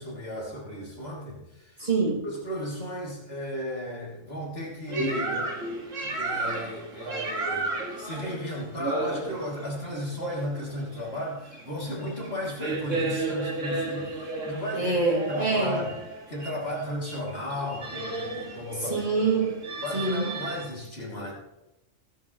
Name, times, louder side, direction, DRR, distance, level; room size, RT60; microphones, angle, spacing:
voice 1, 0.0-1.8 2.2-5.5 6.0-15.0 15.3-15.9 16.3-19.0 19.8-21.3, left 1 dB, 50° left, -4 dB, 3.3 m, -35 dB
voice 2, 1.8-2.3 14.8-15.9 18.8-20.3, right 3 dB, 35° right, -3 dB, 3.0 m, -26 dB
sound 1, 4.9-20.7, right 2 dB, 85° right, 2.4 m, -33 dB
16.0 x 13.5 x 3.2 m, 0.95 s
omnidirectional pair, 1.3 m